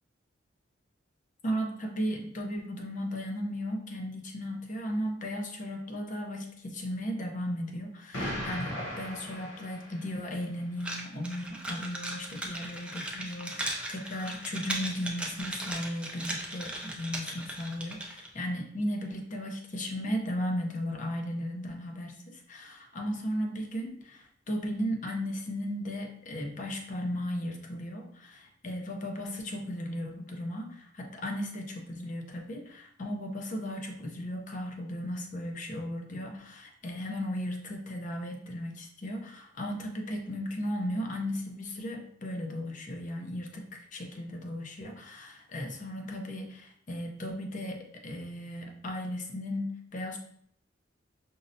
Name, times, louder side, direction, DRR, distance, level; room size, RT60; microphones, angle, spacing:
voice 1, 1.4-50.2, equal, 40° left, 2 dB, 0.6 m, -36 dB
Explosion, 8.1-10.3, equal, 70° left, 0.8 m, -37 dB
sound 1, 10.8-18.3, right 1 dB, 5° right, 0.4 m, -37 dB
5.2 x 2.0 x 2.6 m, 0.65 s
head